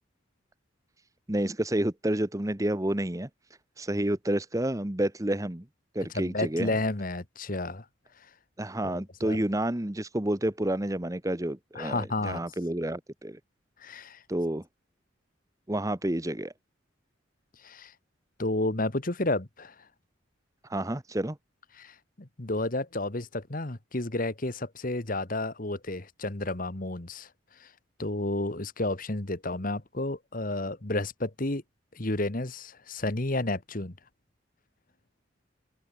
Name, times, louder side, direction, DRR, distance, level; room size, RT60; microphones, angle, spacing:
voice 1, 1.3-3.3 3.8-5.6 5.9-6.8 8.6-13.4 14.3-14.6 15.7-16.5 20.6-21.4, right 1 dB, 15° right, 1.0 m, -29 dB
voice 2, 6.1-7.8 8.8-9.4 11.7-12.4 13.8-14.2 17.6-17.9 18.4-19.7 21.8-27.3 27.6-27.7 28.0-31.6 31.9-33.9, left 2 dB, 45° left, 1.7 m, -31 dB
head